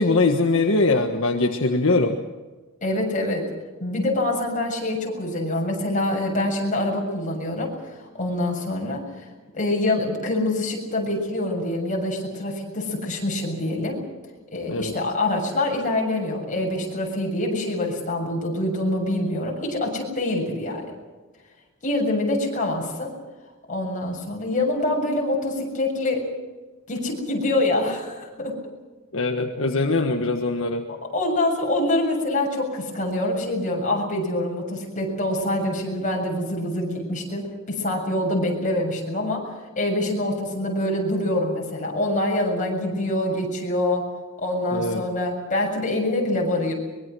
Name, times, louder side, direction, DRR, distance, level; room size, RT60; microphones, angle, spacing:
voice 1, 0.0-2.2 14.7-14.9 29.1-30.8 44.7-45.0, left 3 dB, 65° left, 3 dB, 1.6 m, -22 dB
voice 2, 2.8-3.5 3.8-7.7 8.1-9.0 9.5-14.0 14.5-20.9 21.8-23.1 23.7-26.3 26.9-28.6 30.9-39.5 39.8-44.1 44.4-46.7, left 1 dB, 40° left, 0 dB, 7.1 m, -25 dB
23.5 x 23.0 x 6.3 m, 1.3 s
head